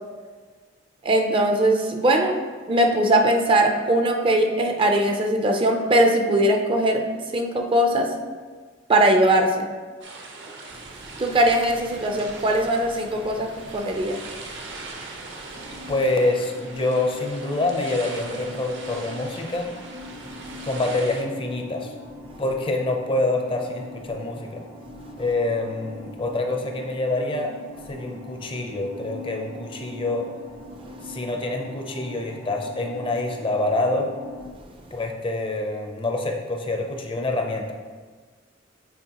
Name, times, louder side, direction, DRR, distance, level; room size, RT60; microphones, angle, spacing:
voice 1, 1.0-2.3 2.7-7.0 7.3-8.1 8.9-9.7 10.8-14.7 14.9-15.9 20.2-20.6 30.8-31.1 34.7-34.9, right 1 dB, 25° right, 3 dB, 0.5 m, -21 dB
sound 1, 10.0-21.2, right 3 dB, 65° right, 0.9 m, -40 dB
sound 2, 15.5-34.5, left 2 dB, 90° right, 1.1 m, -42 dB
voice 2, 15.9-19.7 20.6-21.9 22.4-24.6 25.2-27.5 27.8-30.3 31.0-34.1 34.9-37.7, left 2 dB, 25° left, 3 dB, 0.6 m, -26 dB
8.0 x 4.2 x 2.9 m, 1.5 s
head